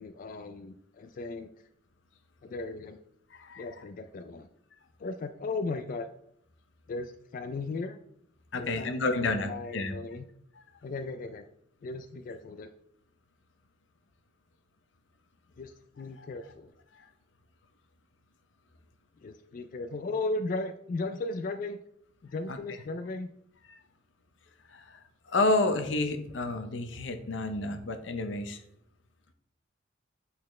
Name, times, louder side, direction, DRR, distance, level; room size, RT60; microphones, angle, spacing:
voice 1, 0.0-1.5 2.4-3.0 3.6-4.5 5.0-6.1 6.9-8.0 8.5-10.2 10.8-11.5 11.8-12.7 15.6-16.7 19.2-21.8 22.2-23.3 26.5-26.6, left 3 dB, 45° left, 8 dB, 0.3 m, -36 dB
voice 2, 3.3-3.7 8.5-10.0 16.2-16.3 22.5-22.6 24.7-25.0 25.3-28.6, left 2 dB, 80° left, 7 dB, 0.7 m, -30 dB
8.5 x 4.1 x 3.1 m, 0.72 s
head